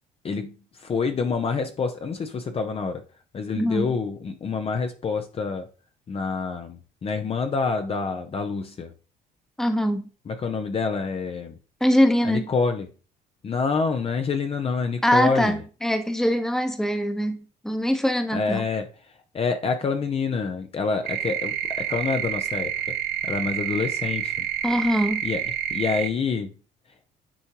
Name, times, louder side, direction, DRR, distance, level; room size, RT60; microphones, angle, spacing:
voice 1, 0.8-3.0 3.3-5.7 6.1-8.9 10.3-11.6 12.2-12.9 13.4-15.6 18.3-18.9 19.3-22.9 23.3-24.5 25.2-25.4 25.7-26.5, left 4 dB, 35° left, 0.7 m, -27 dB
voice 2, 3.6-3.9 9.6-10.0 11.8-12.5 15.0-18.6 24.6-25.3, equal, 5° left, 1.0 m, -23 dB
sound 1, 21.1-26.1, right 10 dB, 60° right, 0.9 m, -28 dB
10.0 x 4.4 x 2.9 m
cardioid pair, 110°, 17 cm